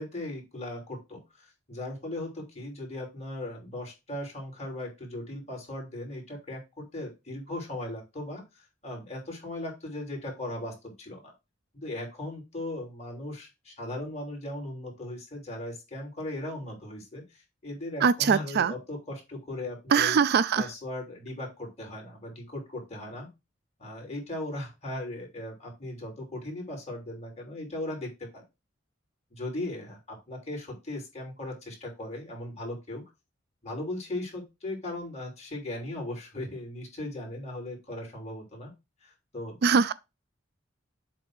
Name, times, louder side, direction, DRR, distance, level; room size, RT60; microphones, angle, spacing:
voice 1, 0.0-11.3 11.7-20.2 20.5-23.3 23.8-28.4 29.3-33.0 33.6-38.7 39.0-39.6, left 1 dB, 35° left, 3.0 m, -38 dB
voice 2, 18.0-18.7 19.9-20.7 39.6-39.9, right 6 dB, 55° right, 0.4 m, -22 dB
7.6 x 2.8 x 6.0 m
head